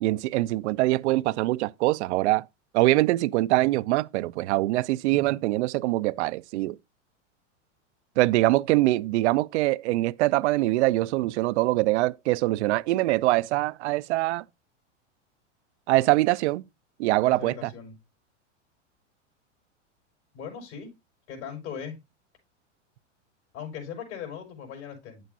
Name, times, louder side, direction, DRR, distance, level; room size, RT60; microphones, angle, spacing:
voice 1, 0.0-2.4 2.7-6.8 8.2-14.4 15.9-16.6 17.0-17.7, right 18 dB, 65° right, 0.5 m, -23 dB
voice 2, 17.2-17.9 20.3-20.9 21.3-22.0 23.5-25.2, left 7 dB, 65° left, 5.4 m, -39 dB
9.3 x 7.7 x 2.7 m
hypercardioid pair, 110°, 37 cm